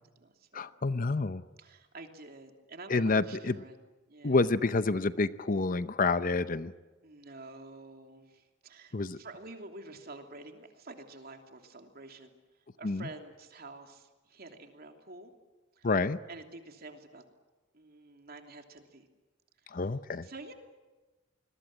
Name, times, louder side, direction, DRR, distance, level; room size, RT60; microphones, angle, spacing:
voice 1, 0.0-1.0 1.6-3.7 4.1-4.5 7.0-12.3 12.8-15.3 15.8-15.9 16.3-17.2 17.7-19.0 19.7-19.8 20.2-20.5, right 2 dB, 50° right, 4 dB, 3.0 m, -49 dB
voice 2, 0.5-1.4 2.9-3.6 4.2-6.7 8.9-9.2 12.8-13.1 15.8-16.2 19.7-20.3, left 3 dB, 45° left, 13 dB, 0.8 m, -28 dB
26.5 x 21.5 x 8.9 m, 1.2 s
head